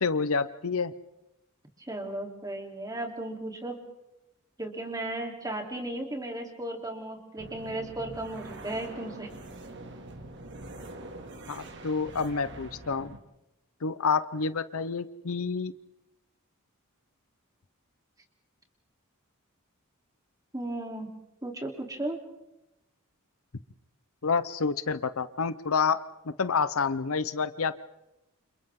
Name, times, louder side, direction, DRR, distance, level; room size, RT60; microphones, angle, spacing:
voice 1, 0.0-0.9 11.5-13.1 13.8-15.7 24.2-26.0 26.2-27.7, left 5 dB, 65° left, 14 dB, 0.8 m, -28 dB
voice 2, 1.8-3.8 4.6-9.3 20.5-21.1 21.4-22.2, right 1 dB, 15° right, 2 dB, 3.4 m, -35 dB
sound 1, 7.4-13.2, right 2 dB, 55° right, 2.3 m, -44 dB
29.5 x 28.0 x 3.7 m, 0.93 s
head